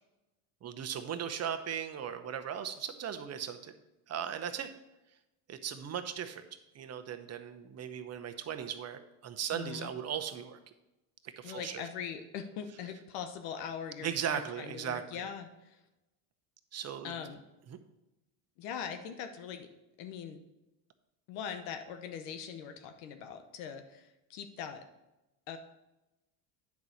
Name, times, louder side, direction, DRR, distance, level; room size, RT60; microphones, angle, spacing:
voice 1, 0.6-3.7 4.1-4.7 5.5-6.4 6.7-10.6 11.2-11.8 14.0-15.2 16.7-17.1 17.7-17.8, right 8 dB, 35° right, 7 dB, 0.9 m, -37 dB
voice 2, 9.5-9.9 11.4-15.8 17.0-17.4 18.6-19.7 20.0-20.4 21.3-24.8 25.5-25.6, left 7 dB, 80° left, 7 dB, 1.0 m, -41 dB
9.6 x 4.1 x 6.3 m, 0.97 s
supercardioid pair, 100°, 44 cm